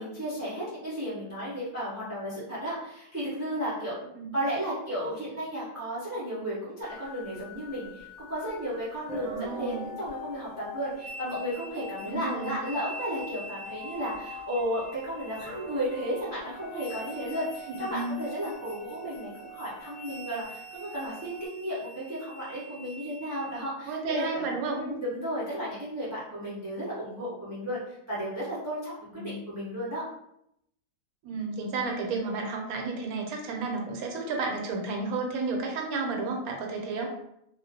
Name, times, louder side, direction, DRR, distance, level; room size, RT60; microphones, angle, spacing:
voice 1, 0.0-4.0 4.3-24.5 24.7-30.0, equal, 25° right, -8 dB, 0.4 m, -34 dB
sound 1, 6.8-21.5, left 1 dB, 15° left, 1.0 m, -44 dB
voice 2, 9.2-10.0 12.1-12.6 17.7-18.2 23.9-24.8 29.1-29.4 31.2-37.1, right 3 dB, 80° right, 2 dB, 1.0 m, -32 dB
sound 2, 10.9-23.6, right 1 dB, 60° left, 0.4 m, -46 dB
2.4 x 2.0 x 2.6 m, 0.78 s
omnidirectional pair, 1.5 m